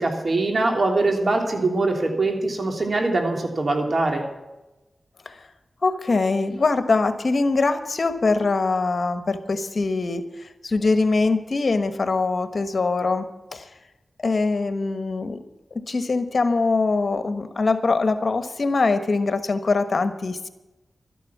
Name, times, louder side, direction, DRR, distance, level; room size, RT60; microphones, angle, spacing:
voice 1, 0.0-4.2, right 2 dB, 60° right, 2 dB, 3.1 m, -22 dB
voice 2, 5.8-13.3 13.5-13.7 14.2-15.4 15.9-20.5, left 3 dB, 60° left, 9 dB, 1.2 m, -23 dB
13.0 x 11.0 x 7.3 m, 1.0 s
cardioid pair, 50°, 0 cm